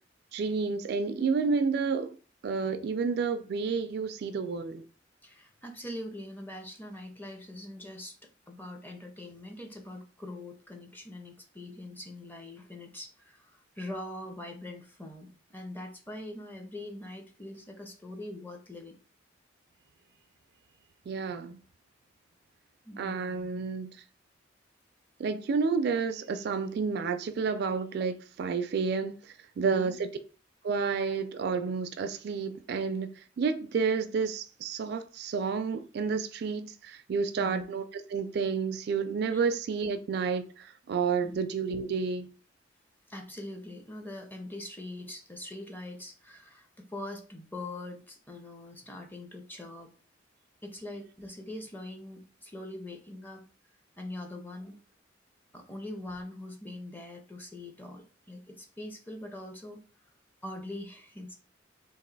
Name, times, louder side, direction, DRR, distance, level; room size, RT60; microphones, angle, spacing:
voice 1, 0.3-2.2 2.4-4.8 21.1-21.6 23.0-23.9 25.2-30.1 30.6-37.8 38.1-42.3, right 5 dB, 60° right, 0.3 m, -30 dB
voice 2, 5.2-8.2 8.5-19.0 22.8-23.5 29.6-30.0 37.4-37.6 39.3-39.4 41.2-41.4 43.1-49.9 50.6-53.4 54.0-54.8 55.5-59.9 60.4-61.3, left 1 dB, 10° left, 0.6 m, -43 dB
3.0 x 2.5 x 3.9 m
head